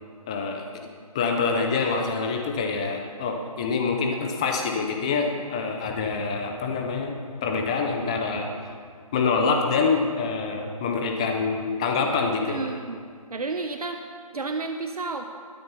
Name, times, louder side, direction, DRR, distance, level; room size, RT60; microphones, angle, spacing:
voice 1, 0.3-0.9 1.1-7.2 7.4-8.5 9.1-12.6, left 4 dB, 10° left, 3 dB, 0.5 m, -26 dB
voice 2, 12.4-13.0 13.3-14.0 14.3-15.3, right 3 dB, 75° right, 6 dB, 1.1 m, -31 dB
21.0 x 8.8 x 5.6 m, 2.1 s
figure-of-eight pair, 165°, 19 cm